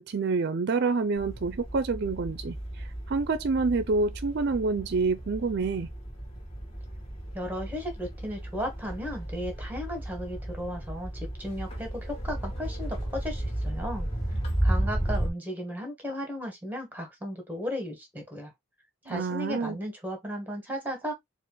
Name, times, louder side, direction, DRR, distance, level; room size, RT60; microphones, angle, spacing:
voice 1, 0.0-5.9 19.1-19.8, right 4 dB, 50° right, 0.4 m, -28 dB
sound 1, 1.2-15.3, right 1 dB, 30° left, 1.5 m, -34 dB
voice 2, 7.3-14.1 14.6-18.5 19.0-21.1, equal, 10° right, 1.4 m, -35 dB
4.2 x 2.5 x 3.7 m
head